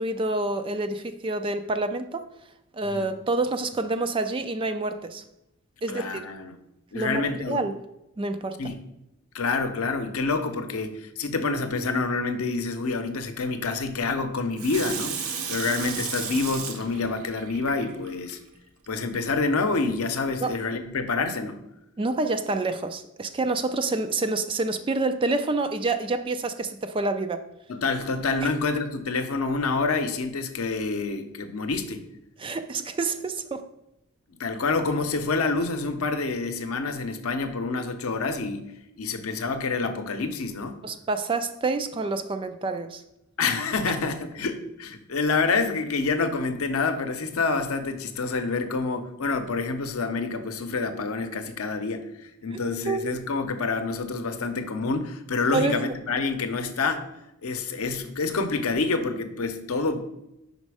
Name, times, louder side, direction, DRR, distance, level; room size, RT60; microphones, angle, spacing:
voice 1, 0.0-2.2 2.7-5.2 5.8-6.3 6.9-7.7 8.2-8.6 20.4-20.5 22.0-27.4 32.4-33.6 40.8-43.0 52.9-53.1 55.5-55.7, right 3 dB, 25° right, 9 dB, 0.3 m, -27 dB
voice 2, 5.9-6.6 6.9-7.6 8.6-8.8 9.3-15.1 15.5-18.4 18.9-21.6 27.7-32.1 34.4-38.7 39.0-40.8 43.4-52.1 52.4-57.0 57.4-60.1, left 4 dB, 85° left, 8 dB, 0.7 m, -27 dB
Water tap faucet / Sink (filling or washing), 14.6-18.3 18.8-18.9, right 6 dB, 85° right, 0.8 m, -34 dB
5.3 x 4.1 x 4.7 m, 0.87 s
head